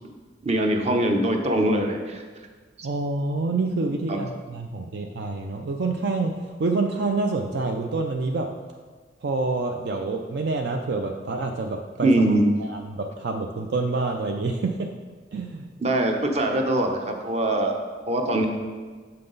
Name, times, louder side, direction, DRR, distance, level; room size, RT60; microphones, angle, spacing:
voice 1, 0.4-2.2 2.8-2.9 4.1-4.2 12.0-12.4 15.8-17.7 18.1-18.5, right 1 dB, 35° right, 3 dB, 0.8 m, -22 dB
voice 2, 2.8-8.5 9.2-12.1 12.6-14.9 15.3-15.7, right 3 dB, 60° right, 3 dB, 0.4 m, -27 dB
7.6 x 5.8 x 3.9 m, 1.5 s
head